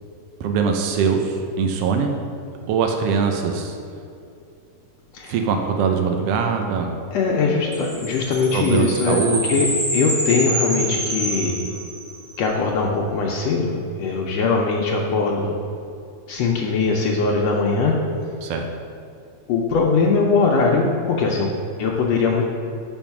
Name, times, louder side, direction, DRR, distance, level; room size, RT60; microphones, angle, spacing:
voice 1, 0.4-2.1 2.7-3.8 5.3-6.9 8.5-9.6 18.4-18.6, right 5 dB, 75° right, 3 dB, 1.5 m, -22 dB
voice 2, 7.1-9.2 9.5-11.6 12.4-15.6 16.3-18.0 19.5-21.5 21.8-22.4, left 4 dB, 75° left, -2 dB, 1.7 m, -21 dB
sound 1, 7.7-12.3, right 1 dB, 25° right, 0.8 m, -27 dB
7.2 x 5.4 x 5.8 m, 2.5 s
omnidirectional pair, 3.3 m